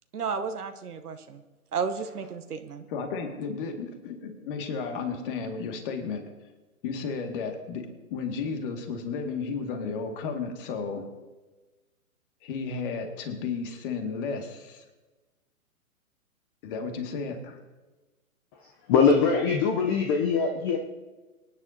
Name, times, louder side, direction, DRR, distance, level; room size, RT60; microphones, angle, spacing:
voice 1, 0.1-1.4 1.7-2.9, right 6 dB, 85° right, 8 dB, 1.0 m, -32 dB
voice 2, 2.9-6.2 6.8-11.1 12.4-14.8 16.6-17.6, left 5 dB, 35° left, 4 dB, 2.0 m, -33 dB
voice 3, 18.9-20.8, left 5 dB, 15° left, 3 dB, 0.6 m, -22 dB
25.0 x 10.0 x 2.8 m, 1.2 s
hypercardioid pair, 135°, 44 cm